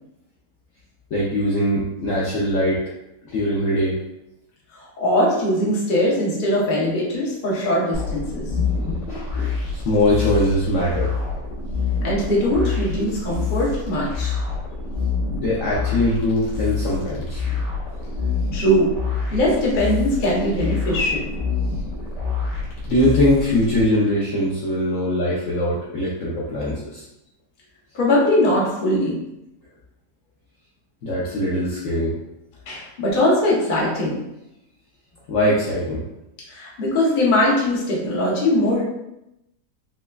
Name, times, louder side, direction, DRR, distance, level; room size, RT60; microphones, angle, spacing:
voice 1, 1.1-2.8 3.3-4.0 8.6-11.1 15.3-18.0 22.9-27.0 31.0-32.2 35.3-36.0, left 1 dB, 65° left, -6 dB, 0.9 m, -22 dB
voice 2, 4.7-8.5 12.0-14.3 18.5-19.0 19.3-21.3 27.9-29.2 32.7-34.2 36.5-38.8, left 1 dB, 40° left, -5 dB, 0.8 m, -21 dB
sound 1, 7.9-23.8, left 4 dB, 85° left, 1.8 m, -27 dB
5.6 x 2.1 x 2.3 m, 0.87 s
omnidirectional pair, 1.8 m